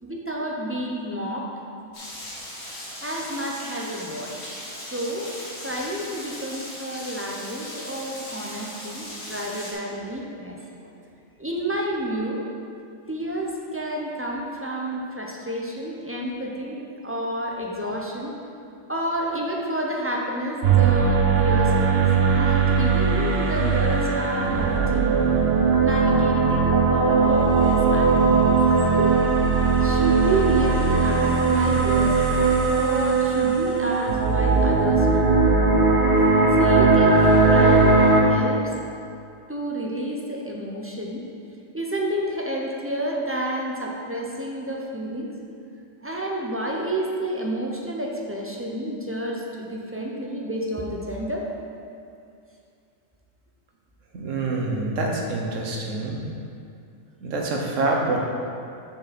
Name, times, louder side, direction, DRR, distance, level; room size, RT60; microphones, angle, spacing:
voice 1, 0.0-1.5 3.0-4.4 4.9-5.3 5.6-10.6 10.8-10.9 11.4-12.4 13.1-18.3 18.9-22.0 22.3-25.2 25.8-28.5 28.9-29.3 29.8-35.4 36.6-38.7 39.5-41.2 41.7-45.3 46.0-51.5, right 1 dB, 15° right, -2 dB, 0.5 m, -30 dB
Rain, 1.9-9.7, left 1 dB, 85° left, 2.0 m, -38 dB
sound 1, 20.6-38.2, right 4 dB, 55° right, 0.9 m, -19 dB
voice 2, 54.1-56.2 57.2-58.2, right 2 dB, 75° right, 0 dB, 1.4 m, -26 dB
6.6 x 6.3 x 4.2 m, 2.4 s
omnidirectional pair, 1.3 m